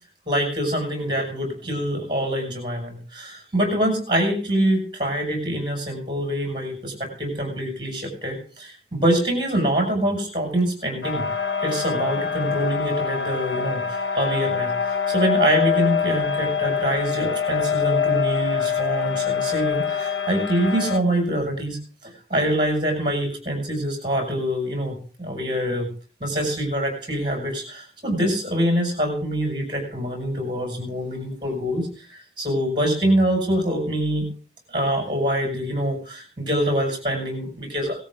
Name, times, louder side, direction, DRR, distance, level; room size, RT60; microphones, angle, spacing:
voice 1, 0.3-11.2 11.6-21.8 22.3-25.9 26.2-34.2 34.7-38.0, right 1 dB, 25° right, 1 dB, 6.3 m, -25 dB
sound 1, 11.0-21.0, left 7 dB, 75° left, 1.1 m, -24 dB
18.0 x 13.5 x 3.8 m, 0.40 s
head